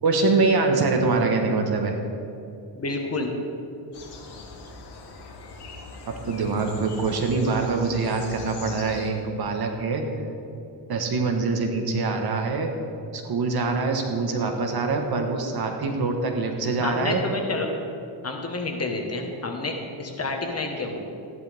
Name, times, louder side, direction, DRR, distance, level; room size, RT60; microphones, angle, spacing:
voice 1, 0.0-1.9 6.1-10.0 10.9-12.7 13.1-17.2, right 3 dB, 50° right, 3 dB, 1.5 m, -24 dB
voice 2, 2.7-3.3 16.8-17.7 18.2-21.0, left 3 dB, 30° left, 2 dB, 1.5 m, -29 dB
sound 1, 3.9-9.1, left 3 dB, 55° left, 1.9 m, -41 dB
14.0 x 11.0 x 3.6 m, 2.6 s
cardioid pair, 120°, 50 cm